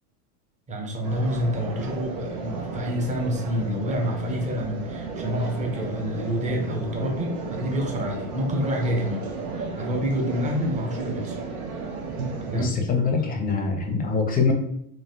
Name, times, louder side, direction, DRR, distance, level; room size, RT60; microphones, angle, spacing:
voice 1, 0.7-9.3 9.6-11.4 12.5-12.8 13.1-13.3, equal, 15° right, 1 dB, 0.7 m, -28 dB
sound 1, 1.0-12.7, right 4 dB, 85° right, 0.8 m, -33 dB
voice 2, 12.5-14.5, left 4 dB, 20° left, 2 dB, 0.5 m, -24 dB
3.0 x 2.5 x 2.6 m, 0.71 s
supercardioid pair, 110°, 43 cm